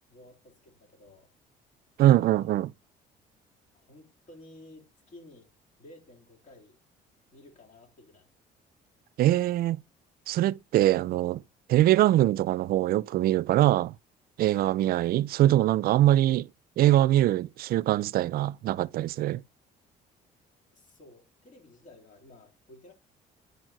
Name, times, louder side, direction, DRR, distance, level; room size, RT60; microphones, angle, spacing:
voice 1, 0.1-1.3 2.1-2.6 3.7-5.5 5.8-6.8 7.3-8.3 14.8-15.0 20.7-22.9, left 1 dB, 50° left, 3.7 m, -53 dB
voice 2, 2.0-2.7 9.2-9.8 10.3-11.4 11.7-13.9 14.4-16.5 16.8-19.4, right 14 dB, 60° right, 0.4 m, -23 dB
9.3 x 4.6 x 4.4 m
cardioid pair, 110°, 17 cm